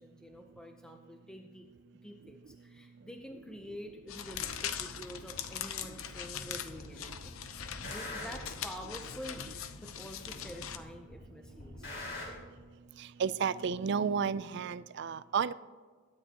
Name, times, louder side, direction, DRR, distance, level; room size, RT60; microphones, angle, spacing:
voice 1, 0.0-1.7 2.0-11.9, equal, 5° left, 3 dB, 0.6 m, -48 dB
sound 1, 4.1-10.8, left 8 dB, 80° left, 0.7 m, -41 dB
sound 2, 4.3-4.5 5.3-5.4 6.3-6.8 7.1-8.6 9.3-9.4 10.3-10.8 11.1-12.3, left 2 dB, 60° left, 4.2 m, -44 dB
voice 2, 13.2-15.5, right 6 dB, 55° right, 18 dB, 0.4 m, -31 dB
22.0 x 9.7 x 2.9 m, 1.5 s
head